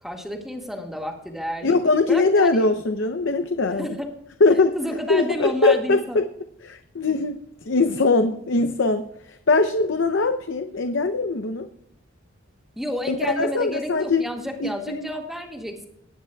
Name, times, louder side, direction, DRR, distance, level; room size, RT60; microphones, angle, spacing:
voice 1, 0.0-1.8 2.1-2.6 3.8-4.1 4.7-6.2 12.7-15.9, equal, ahead, 1 dB, 1.8 m, -30 dB
voice 2, 1.6-4.0 4.4-4.7 5.1-6.2 6.6-7.4 7.6-11.7 13.1-14.2 14.6-15.1, left 3 dB, 65° left, 8 dB, 0.7 m, -21 dB
19.5 x 9.8 x 2.3 m, 0.77 s
head